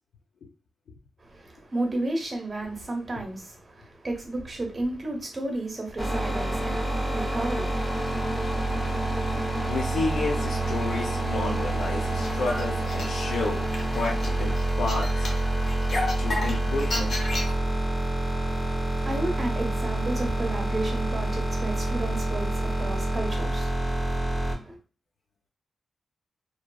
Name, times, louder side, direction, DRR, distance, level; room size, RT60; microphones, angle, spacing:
voice 1, 1.2-9.7 18.4-24.8, right 2 dB, 35° right, 1.0 m, -33 dB
sound 1, 6.0-24.6, right 2 dB, 20° left, 0.7 m, -27 dB
voice 2, 9.7-13.7 13.9-15.3 16.2-17.2, left 3 dB, 90° left, 0.6 m, -31 dB
sound 2, 12.0-17.5, left 2 dB, 60° left, 0.8 m, -34 dB
3.1 x 2.3 x 2.2 m
cardioid pair, 95°, 0 cm